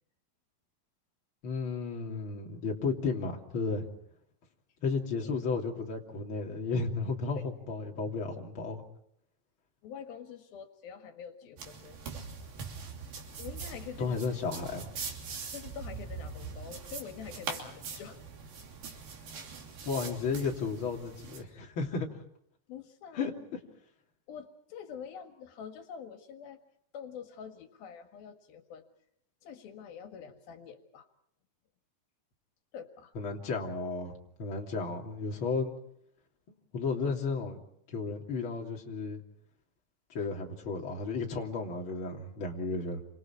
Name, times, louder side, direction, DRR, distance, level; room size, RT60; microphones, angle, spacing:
voice 1, 1.4-3.9 4.8-8.8 14.0-14.9 19.9-22.1 23.2-23.3 33.2-34.1 34.4-35.7 36.7-37.6 37.9-39.2 40.1-43.0, left 4 dB, 35° left, 0 dB, 3.5 m, -33 dB
voice 2, 9.8-12.3 13.4-14.2 15.5-18.2 18.9-19.0 22.7-23.2 24.3-26.6 26.9-28.9 29.4-31.1 32.7-33.1 40.2-40.3, left 7 dB, 85° left, 6 dB, 3.6 m, -46 dB
sound 1, 11.6-21.4, right 5 dB, 90° right, 4.9 m, -42 dB
28.5 x 26.5 x 4.6 m, 0.72 s
omnidirectional pair, 4.1 m